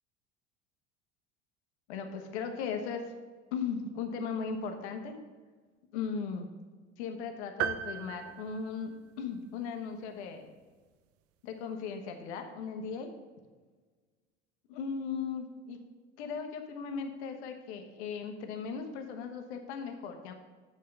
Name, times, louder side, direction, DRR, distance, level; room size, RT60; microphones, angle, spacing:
voice 1, 1.9-3.2 3.5-5.2 5.9-6.5 7.0-10.5 11.4-13.1 14.7-15.8 16.2-20.3, left 6 dB, 70° left, 5 dB, 1.1 m, -37 dB
sound 1, 7.6-9.4, right 9 dB, 45° right, 0.5 m, -36 dB
7.6 x 4.8 x 5.4 m, 1.4 s
hypercardioid pair, 65°, 35 cm